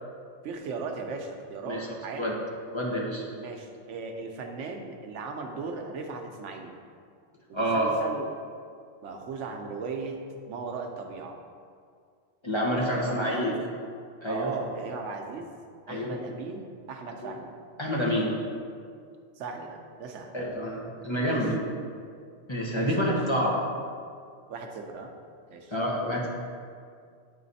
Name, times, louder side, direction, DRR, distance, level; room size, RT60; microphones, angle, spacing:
voice 1, 0.4-2.3 3.4-6.8 7.5-8.3 9.0-10.2 10.5-11.4 12.9-13.6 14.3-15.5 15.9-17.6 19.4-20.3 21.2-21.5 22.7-23.1 24.5-25.1 25.5-25.7 26.0-26.2, right 4 dB, 85° right, 3 dB, 1.0 m, -37 dB
voice 2, 2.7-3.2 7.5-7.9 12.4-13.5 14.2-14.5 15.9-16.1 17.8-18.3 20.3-21.6 22.5-23.6 25.7-26.3, equal, 30° left, -4 dB, 0.7 m, -28 dB
9.1 x 3.2 x 4.0 m, 2.2 s
omnidirectional pair, 1.2 m